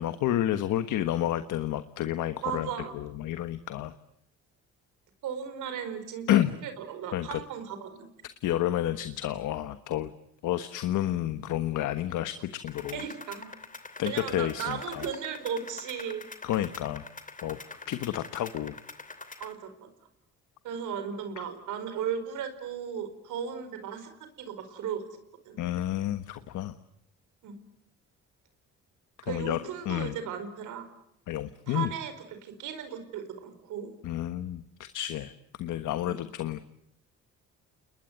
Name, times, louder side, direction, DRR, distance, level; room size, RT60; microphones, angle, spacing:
voice 1, 0.0-3.9 6.3-6.5 7.1-7.4 8.4-10.1 10.4-13.0 14.0-15.1 16.4-17.0 17.4-17.6 17.9-18.7 25.6-26.7 29.3-29.6 29.8-30.1 31.3-31.9 34.0-35.3 35.6-36.7, left 13 dB, 85° left, 10 dB, 1.3 m, -30 dB
voice 2, 2.4-3.0 5.2-8.1 12.9-13.5 14.0-16.2 19.4-19.7 20.6-24.1 24.4-25.0 25.4-25.6 27.4-27.6 29.2-30.9 31.7-32.1 32.4-33.9 36.1-36.2, right 7 dB, 85° right, 9 dB, 4.9 m, -36 dB
sound 1, 12.7-19.5, left 3 dB, 25° left, 2.9 m, -45 dB
30.0 x 21.0 x 9.4 m, 0.77 s
cardioid pair, 90°, 30 cm